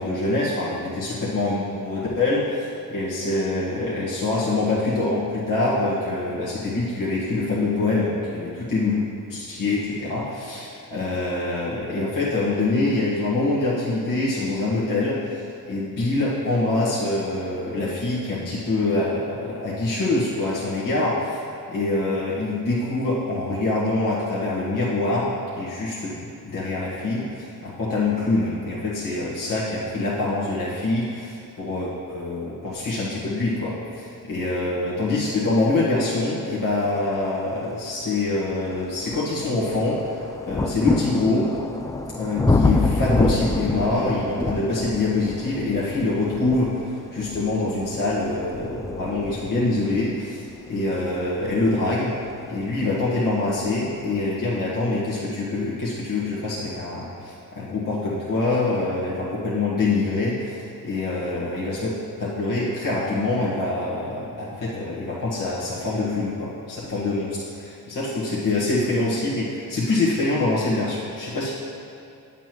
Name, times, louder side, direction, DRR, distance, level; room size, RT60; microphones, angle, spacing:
voice 1, 0.0-9.0 9.3-21.4 21.7-26.1 26.4-41.5 42.2-52.1 52.5-61.9 62.2-71.5, left 2 dB, 55° left, -8 dB, 1.6 m, -25 dB
sound 1, 37.6-37.7 38.3-53.0 53.9-54.0, left 2 dB, 10° left, 0.4 m, -27 dB
9.1 x 7.1 x 3.0 m, 2.6 s
cardioid pair, 60°, 40 cm